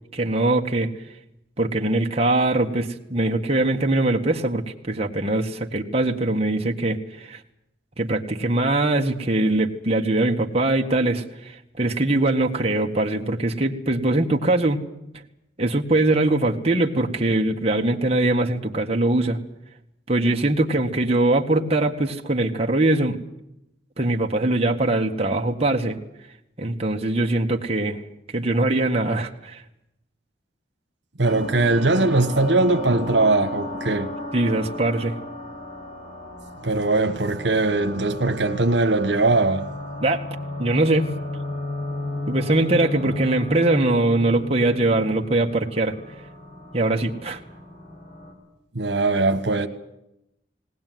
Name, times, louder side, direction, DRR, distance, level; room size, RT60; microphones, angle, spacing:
voice 1, 0.1-0.9 1.6-7.4 8.0-14.8 15.6-19.4 20.1-23.2 24.0-26.0 26.6-28.0 28.3-29.6 34.3-35.2 40.0-40.2 40.6-41.2 42.3-45.9 46.7-47.4, right 2 dB, 35° right, 1.8 m, -22 dB
sound 1, 31.2-48.3, left 2 dB, 35° left, 7.9 m, -34 dB
voice 2, 31.2-34.1 36.6-39.7 48.7-49.7, right 2 dB, 85° right, 1.5 m, -20 dB
19.5 x 19.5 x 9.4 m
head